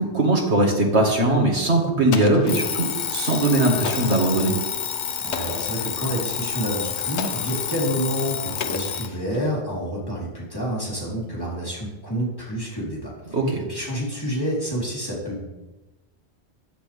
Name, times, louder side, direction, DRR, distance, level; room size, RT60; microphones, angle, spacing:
voice 1, 0.0-4.5 13.3-13.6, right 2 dB, 80° right, 0 dB, 2.6 m, -20 dB
Explosion, 2.1-3.0 3.8-4.4 5.3-5.9 7.2-7.7 8.6-9.5, left 7 dB, 85° left, 1.1 m, -34 dB
Alarm, 2.5-9.2, left 8 dB, 50° left, 0.7 m, -29 dB
voice 2, 5.2-13.3 13.7-15.5, equal, 20° left, -6 dB, 4.1 m, -28 dB
15.0 x 10.5 x 3.6 m, 1.1 s
omnidirectional pair, 1.1 m